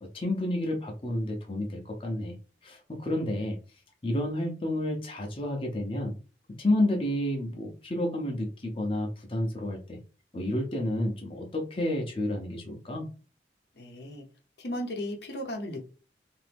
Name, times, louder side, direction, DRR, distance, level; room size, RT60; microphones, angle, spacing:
voice 1, 0.0-2.3 2.6-3.6 4.0-6.2 6.6-10.0 10.3-13.1, left 1 dB, 30° left, 1 dB, 0.6 m, -30 dB
voice 2, 13.8-14.2 14.6-15.9, left 1 dB, 75° left, 2 dB, 0.8 m, -35 dB
2.9 x 2.6 x 3.4 m, 0.35 s
head